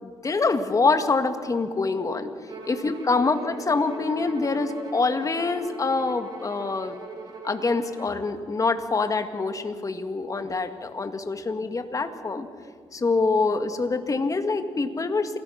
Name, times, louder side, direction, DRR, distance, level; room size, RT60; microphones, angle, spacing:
voice 1, 0.0-2.3 2.7-7.0 7.4-12.5 12.9-15.4, left 3 dB, 35° left, 8 dB, 1.9 m, -25 dB
Bowed string instrument, 2.5-8.2, right 3 dB, 50° right, 4.0 m, -41 dB
27.5 x 18.5 x 5.9 m, 2.1 s
cardioid pair, 80°, 10 cm